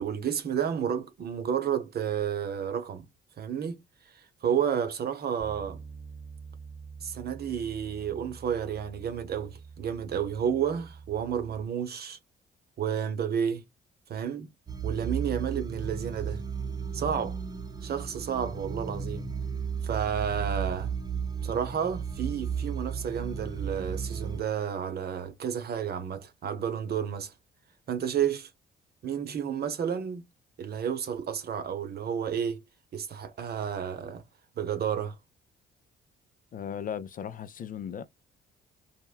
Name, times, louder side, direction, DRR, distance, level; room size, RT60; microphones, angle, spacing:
voice 1, 0.0-3.1 3.4-3.8 4.1-5.8 7.0-12.2 12.8-13.6 14.1-14.5 14.8-16.4 16.9-17.4 17.8-19.3 19.8-20.9 21.4-27.3 27.9-28.5 29.0-30.2 30.6-32.6 32.9-34.2 34.6-35.2, right 8 dB, 55° right, 0.7 m, -31 dB
Bass guitar, 5.4-11.6, right 5 dB, 5° right, 0.9 m, -46 dB
sound 1, 14.7-24.4, right 6 dB, 20° right, 0.5 m, -34 dB
voice 2, 36.5-38.1, left 8 dB, 45° left, 0.4 m, -36 dB
3.5 x 2.1 x 2.2 m
cardioid pair, 90°, 20 cm